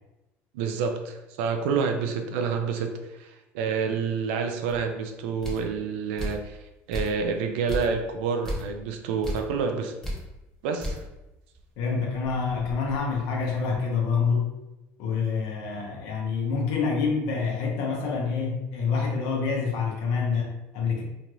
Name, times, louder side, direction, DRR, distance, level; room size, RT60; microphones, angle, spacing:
voice 1, 0.5-6.6 6.9-9.9 10.6-11.0, right 5 dB, 90° right, 5 dB, 0.4 m, -28 dB
sound 1, 4.7-4.8 5.4-5.7 6.2-6.5 6.9-7.3 7.7-8.0 8.4-8.7 9.2-9.5 10.0-10.3 10.8-11.1 11.5-11.6 12.1-13.6, equal, 10° left, 0.9 m, -35 dB
voice 2, 11.8-14.5 15.0-21.0, left 5 dB, 75° left, 0 dB, 0.8 m, -27 dB
2.9 x 2.4 x 3.0 m, 0.97 s
supercardioid pair, 105°, 6 cm